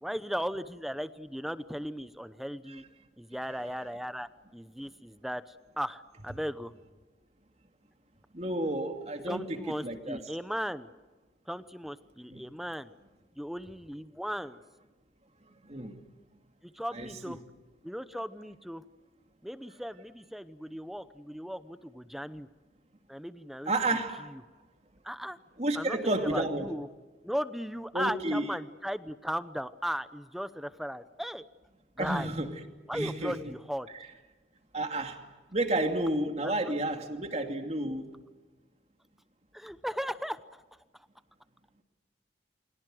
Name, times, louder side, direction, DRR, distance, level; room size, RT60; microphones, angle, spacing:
voice 1, 0.0-2.8 3.2-6.7 9.3-10.9 11.5-12.9 13.3-14.6 16.6-17.4 17.8-18.8 19.4-22.5 23.1-23.7 24.3-24.4 25.0-25.4 25.7-26.9 27.2-31.4 32.0-32.3 32.9-33.9 36.4-36.6 39.5-40.6 40.9-41.1, equal, ahead, 13 dB, 0.9 m, -37 dB
voice 2, 8.3-10.2 12.3-12.4 15.7-16.0 16.9-17.4 23.7-24.3 25.6-26.7 27.9-28.4 32.0-32.5 32.9-33.4 34.7-35.2 35.5-38.1, right 1 dB, 35° right, 5 dB, 2.6 m, -31 dB
29.5 x 23.0 x 7.8 m, 1.3 s
head